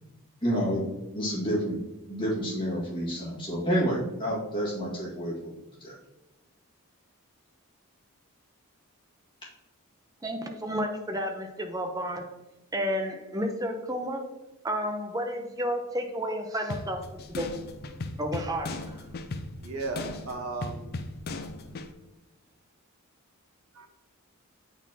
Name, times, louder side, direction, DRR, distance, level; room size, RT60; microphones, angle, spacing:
voice 1, 0.4-0.8 1.1-1.8 2.1-5.5 5.8-5.9, equal, 20° left, -6 dB, 1.8 m, -29 dB
voice 2, 10.2-12.3 12.7-14.3 14.6-17.0 17.3-17.5 18.2-19.0, equal, 15° right, 3 dB, 0.6 m, -31 dB
sound 1, 16.7-21.9, left 2 dB, 45° left, 0.4 m, -37 dB
voice 3, 19.6-20.9 23.7-23.9, right 3 dB, 75° right, 3 dB, 1.0 m, -35 dB
8.8 x 4.1 x 2.8 m, 1.1 s
head